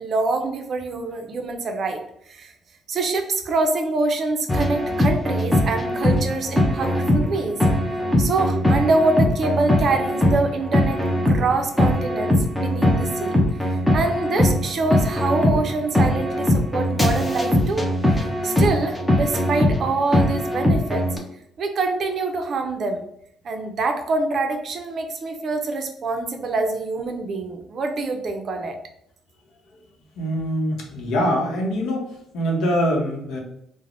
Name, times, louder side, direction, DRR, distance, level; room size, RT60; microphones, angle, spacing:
voice 1, 0.0-2.5 2.9-7.7 8.2-13.3 13.6-17.9 18.1-21.1 21.6-23.0 23.4-28.8, right 3 dB, 45° right, 5 dB, 0.4 m, -25 dB
sound 1, 4.5-21.2, left 1 dB, 10° left, 0.5 m, -21 dB
voice 2, 30.1-33.4, equal, 80° left, 0 dB, 0.8 m, -24 dB
3.3 x 2.1 x 2.5 m, 0.74 s
cardioid pair, 135°, 0 cm